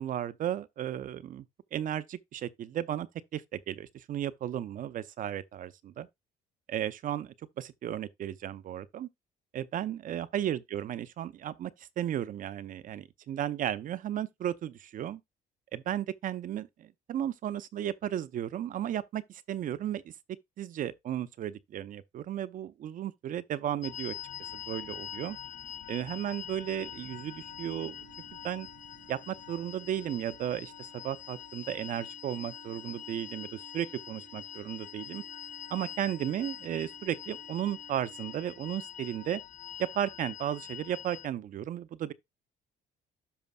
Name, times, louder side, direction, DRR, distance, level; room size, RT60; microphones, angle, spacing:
voice 1, 0.0-1.5 1.7-3.1 3.3-6.1 6.7-9.1 9.5-15.2 15.7-20.1 20.6-25.4 25.9-28.0 28.4-28.7 29.1-35.2 35.7-39.4 39.8-42.1, right 11 dB, 50° right, 0.6 m, -34 dB
sound 1, 23.8-41.3, left 10 dB, 45° left, 0.5 m, -44 dB
sound 2, 24.8-38.8, right 13 dB, 80° right, 1.1 m, -58 dB
12.5 x 5.1 x 2.3 m
cardioid pair, 110°, 17 cm